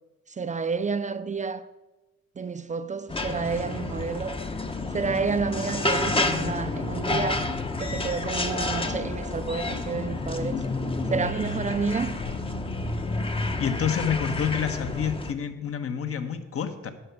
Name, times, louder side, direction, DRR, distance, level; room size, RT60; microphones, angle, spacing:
voice 1, 0.4-1.7 2.4-4.4 4.9-7.5 7.8-10.6 11.1-12.2, right 5 dB, 25° right, 0.4 m, -30 dB
sound 1, 3.1-15.3, left 2 dB, 20° left, 0.8 m, -29 dB
voice 2, 13.6-16.9, left 8 dB, 50° left, 1.0 m, -28 dB
10.0 x 5.7 x 6.8 m
cardioid pair, 90°, 30 cm